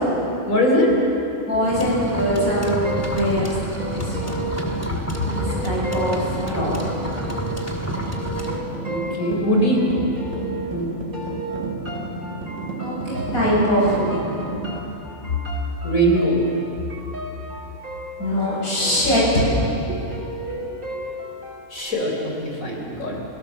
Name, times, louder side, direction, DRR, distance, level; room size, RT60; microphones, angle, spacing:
voice 1, 0.5-0.9 8.8-9.8 10.7-10.9 15.2-15.4 15.8-16.4 21.7-23.2, equal, 70° left, 0 dB, 4.4 m, -21 dB
voice 2, 1.5-3.5 3.9-4.4 5.3-7.0 11.9-12.4 12.8-14.2 18.2-19.7, equal, 90° left, -6 dB, 8.3 m, -22 dB
sound 1, 1.6-14.8, right 3 dB, 50° right, 2.0 m, -33 dB
sound 2, 1.7-8.6, equal, 10° left, 2.2 m, -30 dB
sound 3, 2.2-10.8 11.1-21.8, right 1 dB, 75° right, 5.1 m, -34 dB
30.0 x 17.0 x 7.3 m, 2.9 s
omnidirectional pair, 1.5 m